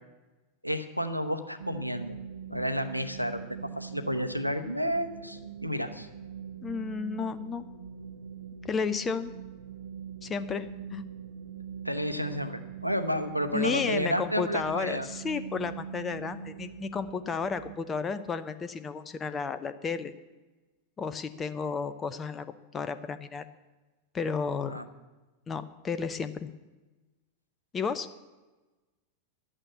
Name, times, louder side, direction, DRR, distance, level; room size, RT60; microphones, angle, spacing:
voice 1, 0.6-2.1 2.5-6.1 11.8-15.1 24.6-24.8, equal, 90° left, 7 dB, 0.9 m, -31 dB
sound 1, 1.6-17.8, right 8 dB, 70° right, 0.6 m, -43 dB
voice 2, 6.6-7.7 8.6-9.3 10.2-11.0 13.5-20.1 21.0-23.4 24.1-24.9 25.5-26.5 27.7-28.1, left 5 dB, 20° left, 12 dB, 0.7 m, -32 dB
11.5 x 9.0 x 8.4 m, 1.2 s
figure-of-eight pair, 90°, 0 cm